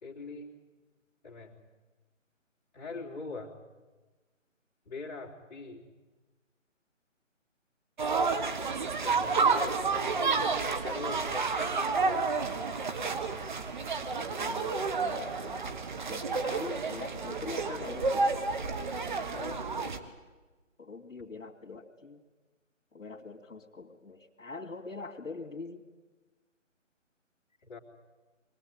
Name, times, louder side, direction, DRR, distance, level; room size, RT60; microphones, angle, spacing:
voice 1, 0.0-0.5 1.2-1.5 2.7-3.5 4.8-5.9 9.0-10.5 10.8-12.3 19.3-19.7 27.6-27.8, left 3 dB, 35° left, -3 dB, 3.2 m, -42 dB
sound 1, 8.0-20.0, right 4 dB, 35° right, 1.4 m, -30 dB
voice 2, 14.4-15.6 16.1-18.4 20.8-22.2 22.9-25.8, left 3 dB, 75° left, 5 dB, 2.6 m, -43 dB
23.0 x 18.0 x 9.1 m, 1.2 s
figure-of-eight pair, 160°, 39 cm